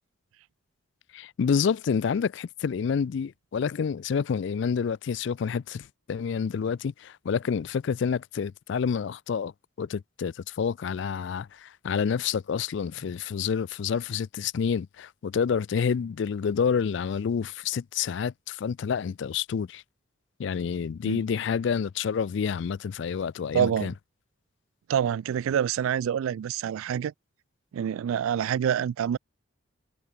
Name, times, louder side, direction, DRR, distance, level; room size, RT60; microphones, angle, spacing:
voice 1, 1.1-9.5 9.8-19.8 20.4-23.9, left 6 dB, 60° left, 0.3 m, -28 dB
voice 2, 23.5-23.9 24.9-27.1 27.7-29.2, right 9 dB, 80° right, 0.3 m, -26 dB
head